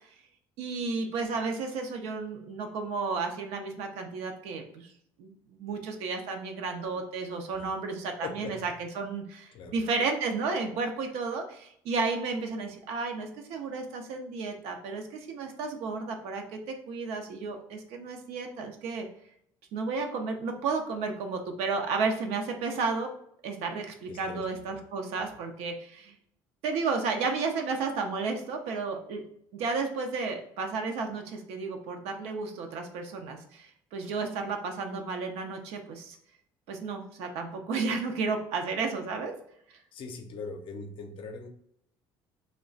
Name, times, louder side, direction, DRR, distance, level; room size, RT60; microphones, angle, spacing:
voice 1, 0.6-4.9 5.2-19.1 19.7-23.1 23.4-26.1 26.6-29.2 29.5-36.2 36.7-39.3 39.7-39.8, right 4 dB, 75° right, 4 dB, 0.6 m, -32 dB
voice 2, 8.2-8.7 9.5-9.8 24.1-24.8 25.2-25.3 39.9-41.5, left 4 dB, 55° left, 6 dB, 0.5 m, -41 dB
2.3 x 2.1 x 3.8 m, 0.69 s
supercardioid pair, 85°, 11 cm